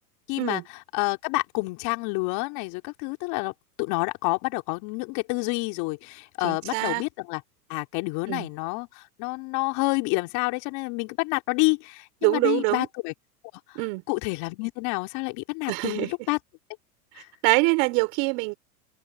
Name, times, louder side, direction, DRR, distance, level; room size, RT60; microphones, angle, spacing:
voice 1, 0.3-3.5 3.8-7.4 7.7-13.1 14.1-16.4 17.2-17.3, left 27 dB, 50° left, 3.3 m, -28 dB
voice 2, 6.4-7.0 8.3-8.5 12.2-12.9 13.7-14.0 15.7-16.1 17.4-18.6, right 32 dB, 55° right, 5.1 m, -24 dB
open air
hypercardioid pair, 115°, 47 cm